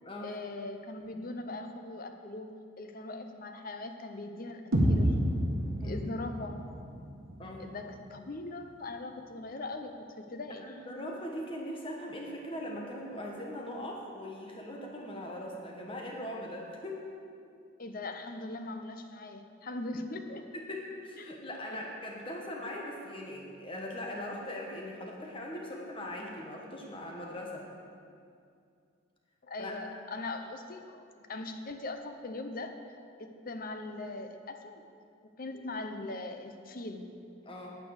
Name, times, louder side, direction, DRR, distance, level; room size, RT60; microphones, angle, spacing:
voice 1, 0.2-4.6 4.9-5.2 5.8-6.7 7.6-9.9 10.2-10.7 17.8-20.4 21.2-21.3 29.4-32.7 33.2-34.8 35.4-37.1, left 2 dB, 45° left, 6 dB, 0.7 m, -40 dB
sound 1, 4.7-8.7, equal, 80° right, 1.7 m, -31 dB
voice 2, 10.6-17.1 20.5-27.7 29.6-29.7 37.4-37.7, left 1 dB, 25° left, -1 dB, 1.2 m, -40 dB
9.4 x 8.5 x 6.5 m, 2.4 s
head